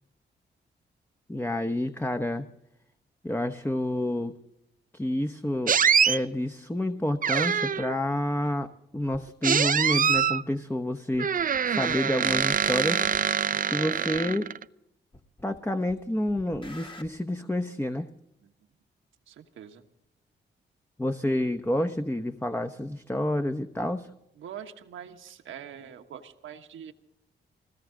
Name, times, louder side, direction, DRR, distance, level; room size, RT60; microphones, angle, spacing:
voice 1, 1.3-2.4 3.2-4.3 4.9-5.8 6.1-13.1 13.6-14.5 15.4-18.1 21.0-24.1, left 1 dB, 10° left, 5 dB, 0.9 m, -29 dB
sound 1, 5.7-6.2 7.2-8.0 9.4-10.4 11.2-14.6, right 7 dB, 45° right, 0.6 m, -24 dB
sound 2, 9.1-9.3 10.1-10.2 11.1-11.6 11.9-13.4 14.1-14.2 15.1-15.6 15.9-17.1, left 1 dB, 25° left, 1.8 m, -47 dB
voice 2, 19.3-19.8 24.4-26.9, right 9 dB, 85° right, 6 dB, 1.4 m, -44 dB
20.5 x 17.0 x 3.8 m, 0.81 s
supercardioid pair, 50°, 20 cm